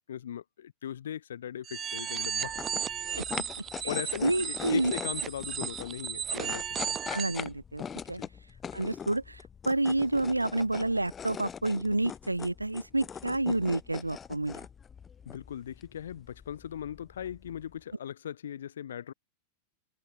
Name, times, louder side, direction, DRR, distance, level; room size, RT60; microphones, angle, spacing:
voice 1, 0.0-2.5 3.8-7.0 8.1-8.3 15.2-19.1, left 9 dB, 65° left, 3.0 m, -39 dB
sound 1, 1.6-7.4, right 8 dB, 25° right, 1.3 m, -35 dB
sound 2, 2.4-17.8, left 7 dB, 20° left, 7.4 m, -42 dB
voice 2, 4.2-4.9 7.1-8.2 8.7-14.6, right 2 dB, 85° right, 2.5 m, -29 dB
figure-of-eight pair, 90°, 0 cm